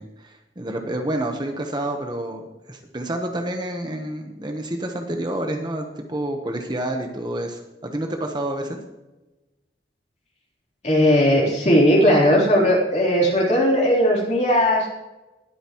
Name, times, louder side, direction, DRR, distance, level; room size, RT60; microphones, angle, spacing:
voice 1, 0.0-8.8, right 1 dB, 25° right, 3 dB, 1.1 m, -29 dB
voice 2, 10.8-14.9, equal, 40° left, -3 dB, 3.7 m, -17 dB
20.0 x 9.1 x 3.1 m, 1.1 s
head